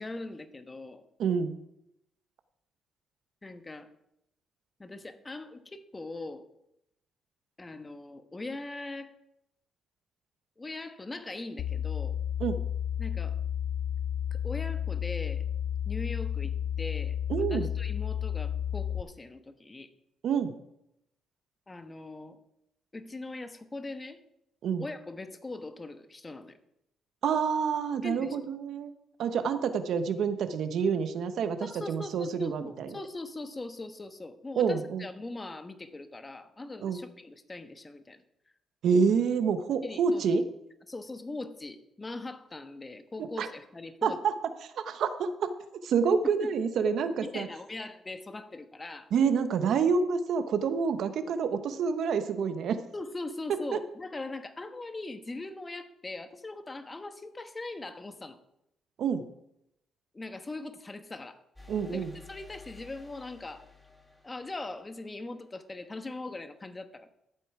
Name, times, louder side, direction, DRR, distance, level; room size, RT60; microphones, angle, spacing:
voice 1, 0.0-1.1 3.4-3.9 4.8-6.5 7.6-9.1 10.6-12.2 13.0-13.4 14.3-15.4 15.9-19.9 21.7-22.4 22.9-24.2 24.8-26.6 28.0-28.5 31.6-38.2 39.8-40.4 40.9-44.2 46.2-46.5 47.2-49.1 52.9-58.4 60.1-61.4 61.9-63.7 64.2-67.1, left 2 dB, 20° left, 8 dB, 1.2 m, -41 dB
voice 2, 1.2-1.5 12.4-12.6 17.3-17.7 20.2-20.5 24.6-24.8 27.2-28.9 29.2-33.0 34.6-35.1 36.8-37.0 38.8-40.4 43.4-43.5 44.0-44.3 44.8-45.5 45.8-47.5 49.1-52.8 53.7-53.8 59.0-59.2 61.7-62.1, right 6 dB, 70° right, 9 dB, 0.9 m, -27 dB
sound 1, 11.6-19.0, left 9 dB, 65° left, 0.4 m, -32 dB
sound 2, 61.6-65.3, left 5 dB, 5° left, 2.0 m, -53 dB
13.0 x 7.7 x 4.8 m, 0.81 s
cardioid pair, 90°, 0 cm